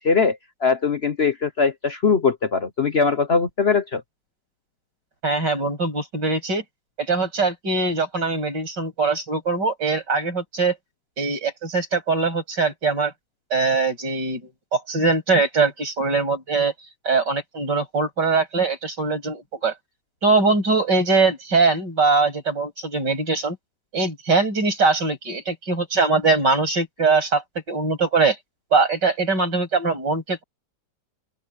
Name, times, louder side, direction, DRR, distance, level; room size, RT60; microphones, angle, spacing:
voice 1, 0.0-4.0, left 5 dB, 45° left, 1.0 m, -21 dB
voice 2, 5.2-6.6 7.0-10.8 11.2-13.1 13.5-16.7 17.0-19.7 20.2-23.6 23.9-28.4 28.7-30.4, right 4 dB, 75° right, 8.3 m, -22 dB
open air
omnidirectional pair, 1.9 m